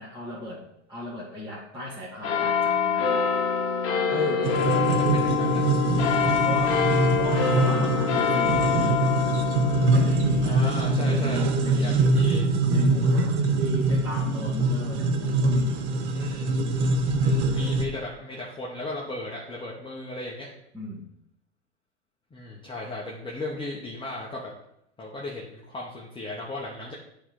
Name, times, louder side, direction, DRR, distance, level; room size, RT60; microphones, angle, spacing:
voice 1, 0.0-3.2 5.9-6.2 6.4-6.9 7.2-9.2 9.9-12.1 12.6-15.9 20.7-21.0, left 1 dB, 10° right, -9 dB, 1.9 m, -37 dB
sound 1, 2.2-15.1 15.8-15.9, left 6 dB, 35° left, 1.3 m, -26 dB
voice 2, 4.1-5.7 10.4-12.4 16.1-16.5 17.2-20.5 22.3-24.5 25.0-26.9, left 2 dB, 15° left, -4 dB, 1.0 m, -36 dB
sound 2, 4.4-17.8, right 2 dB, 65° right, 1.1 m, -24 dB
8.3 x 3.9 x 4.7 m, 0.77 s
hypercardioid pair, 115°, 36 cm